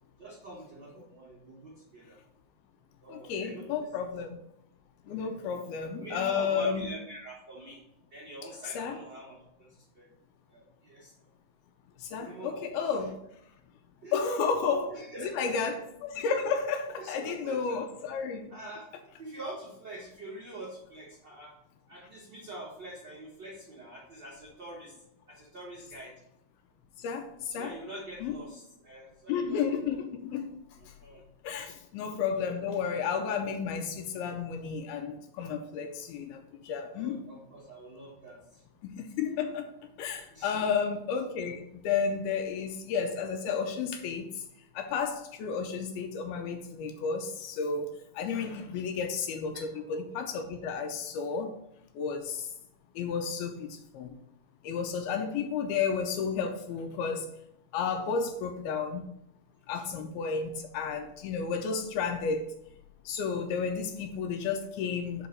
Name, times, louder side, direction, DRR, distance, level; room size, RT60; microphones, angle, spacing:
voice 1, 0.2-2.2 3.0-3.8 5.1-5.3 5.8-7.8 8.1-10.1 10.5-11.1 12.2-12.9 14.0-14.2 14.9-15.7 17.0-17.8 18.5-18.8 19.2-21.5 21.9-24.9 25.3-26.1 27.5-29.6 30.8-31.2 31.5-31.7 36.9-38.6 40.3-40.5 48.7-48.8 49.5-50.0 59.7-59.8 60.5-60.6, right 1 dB, 70° right, -5 dB, 1.0 m, -45 dB
voice 2, 3.1-4.4 5.1-6.9 8.6-9.0 12.0-13.1 14.1-15.0 15.3-18.5 27.0-27.7 28.2-28.4 29.3-30.6 30.9-31.0 31.4-37.3 38.8-39.7 40.0-44.4 44.7-47.9 48.1-51.5 52.0-52.5 53.0-54.2 54.6-57.3 57.7-59.0 59.7-62.5 63.1-65.3, left 6 dB, 80° left, 6 dB, 2.4 m, -32 dB
5.5 x 4.8 x 5.2 m, 0.78 s
omnidirectional pair, 4.7 m